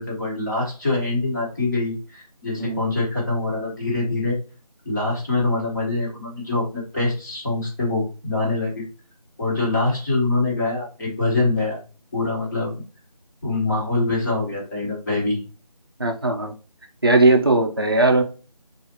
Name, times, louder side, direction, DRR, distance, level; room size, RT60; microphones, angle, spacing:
voice 1, 0.0-4.3 4.8-8.8 9.4-11.8 12.1-12.7 13.4-15.4, left 2 dB, 30° left, -6 dB, 1.5 m, -24 dB
voice 2, 16.0-16.5 17.0-18.2, right 2 dB, 35° right, 4 dB, 0.5 m, -18 dB
4.1 x 2.4 x 3.0 m, 0.35 s
figure-of-eight pair, 170°, 20 cm